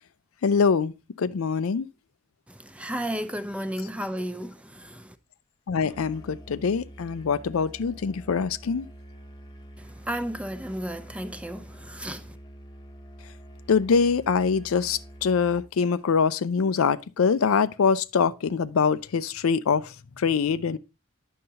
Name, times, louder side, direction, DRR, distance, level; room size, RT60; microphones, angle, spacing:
voice 1, 0.4-1.9 5.7-8.9 13.7-20.8, left 5 dB, 85° left, 0.5 m, -24 dB
voice 2, 2.5-5.2 9.8-12.4, equal, 5° right, 0.5 m, -33 dB
Musical instrument, 5.8-15.8, right 1 dB, 20° left, 0.8 m, -46 dB
9.3 x 6.5 x 2.8 m
head